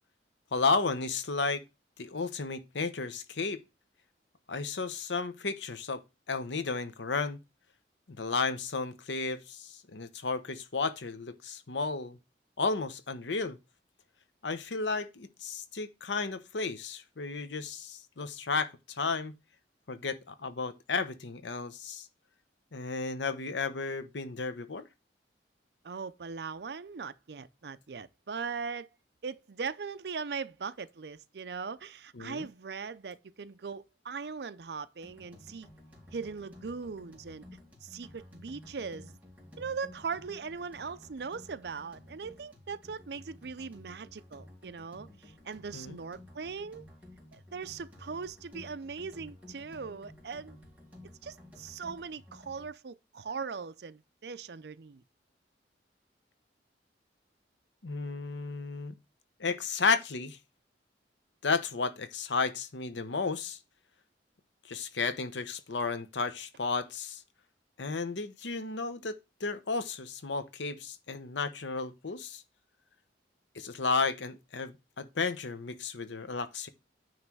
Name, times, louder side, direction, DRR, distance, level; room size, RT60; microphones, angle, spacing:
voice 1, 0.5-1.6 2.0-3.6 4.5-6.0 6.3-7.4 8.1-12.2 12.6-13.6 14.4-19.4 19.9-22.1 22.7-24.8 32.1-32.5 45.7-46.0 57.8-59.0 59.4-60.4 61.4-63.6 64.6-67.2 67.8-72.4 73.5-76.7, left 4 dB, 90° left, 0.8 m, -33 dB
voice 2, 25.8-28.9 29.2-35.7 36.1-37.5 37.8-39.2 39.6-46.9 47.3-50.6 51.2-55.0, right 5 dB, 65° right, 0.5 m, -40 dB
sound 1, 35.0-52.7, left 1 dB, 10° right, 2.2 m, -53 dB
9.4 x 3.2 x 6.1 m
head